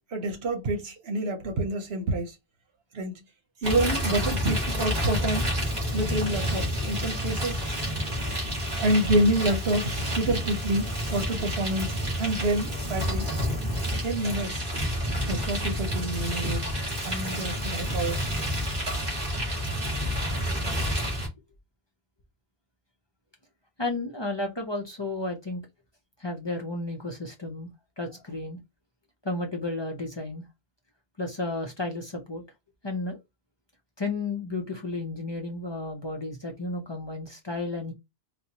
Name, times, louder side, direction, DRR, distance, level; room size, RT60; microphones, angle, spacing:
voice 1, 0.1-2.3 2.9-3.2 3.6-5.5 5.9-7.7 8.8-13.2 14.0-14.6 15.3-16.7 17.0-18.2, right 1 dB, 80° right, 1.2 m, -27 dB
Bicycling Onboard Boardwalk, 3.6-21.3, equal, 45° right, 1.7 m, -29 dB
voice 2, 23.8-25.6 26.2-27.7 28.0-28.6 29.2-30.4 31.2-32.4 32.8-33.2 34.0-37.9, left 2 dB, 30° left, 0.6 m, -32 dB
4.2 x 2.2 x 2.8 m
omnidirectional pair, 1.0 m